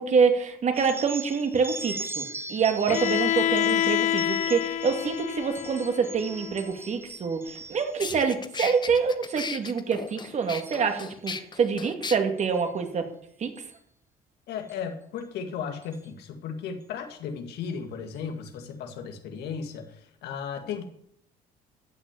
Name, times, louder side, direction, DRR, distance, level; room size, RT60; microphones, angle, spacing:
voice 1, 0.0-13.1 13.4-13.6, right 5 dB, 45° right, 6 dB, 2.3 m, -26 dB
sound 1, 0.7-8.0 8.5-8.9 9.2-9.7 10.1-11.4 12.4-12.6 13.6-13.7 14.7-14.8 15.2-15.3 15.8-16.1, right 3 dB, 15° right, 0.9 m, -40 dB
Bowed string instrument, 2.9-6.8, left 12 dB, 50° left, 0.5 m, -27 dB
sound 2, 7.6-7.7 8.0-12.2, left 5 dB, 25° left, 1.0 m, -36 dB
voice 2, 14.5-20.9, left 6 dB, 80° left, 6 dB, 2.2 m, -35 dB
14.0 x 6.4 x 9.0 m, 0.68 s
cardioid pair, 110°, 17 cm